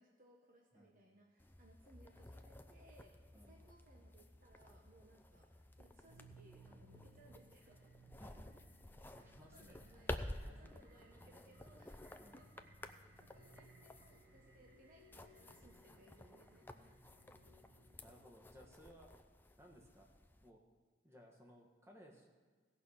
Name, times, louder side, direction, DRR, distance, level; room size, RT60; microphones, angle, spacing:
voice 1, 0.0-8.0 9.1-12.7 13.0-17.0, right 1 dB, 50° right, 0 dB, 1.0 m, -66 dB
sound 1, 1.4-20.5, left 1 dB, 10° left, 0.5 m, -53 dB
voice 2, 3.3-3.7 8.2-8.5 9.1-9.8 10.0-10.7 12.2-12.4 18.0-19.1 19.6-20.1 20.4-20.6 21.0-22.3, equal, 15° right, 1 dB, 1.4 m, -61 dB
sound 2, 6.1-18.2, right 2 dB, 65° right, 1.3 m, -64 dB
17.0 x 5.7 x 6.4 m, 1.5 s
head